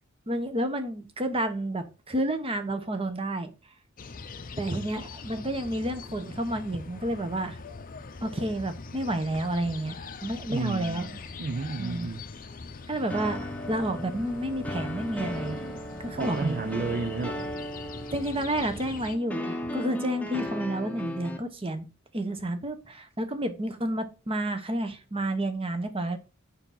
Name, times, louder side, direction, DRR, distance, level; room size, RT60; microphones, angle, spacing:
voice 1, 0.3-3.5 4.6-7.6 8.2-10.0 10.2-11.1 11.8-12.1 12.9-15.6 16.0-16.6 18.1-21.9 22.1-26.2, right 1 dB, 25° right, 1.0 m, -30 dB
sound 1, 4.0-19.2, left 4 dB, 40° left, 0.6 m, -42 dB
voice 2, 10.5-12.3 16.2-17.5, right 4 dB, 45° right, 0.5 m, -32 dB
sound 2, 13.1-21.4, left 1 dB, 5° left, 0.9 m, -36 dB
6.9 x 5.6 x 4.0 m
head